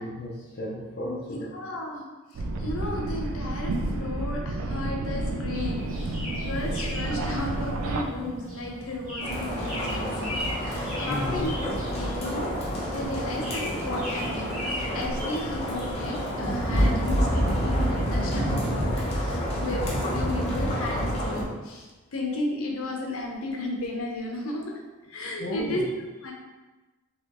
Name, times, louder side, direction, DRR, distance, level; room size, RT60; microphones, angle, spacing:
voice 1, 0.0-1.5 3.4-3.6 11.0-11.5 12.1-12.2 19.8-20.0 25.4-25.9, equal, 50° left, -5 dB, 0.5 m, -34 dB
voice 2, 1.0-2.1 2.3-11.5 11.9-12.5 12.9-24.6 25.1-25.9 26.2-26.3, left 2 dB, 75° left, 0 dB, 0.8 m, -34 dB
sound 1, 2.3-8.0, right 2 dB, 85° right, 0.4 m, -30 dB
sound 2, 5.5-16.2, left 1 dB, 40° right, 1.3 m, -38 dB
sound 3, 9.2-21.4, equal, 30° left, 0.8 m, -28 dB
4.0 x 3.0 x 3.0 m, 1.2 s
head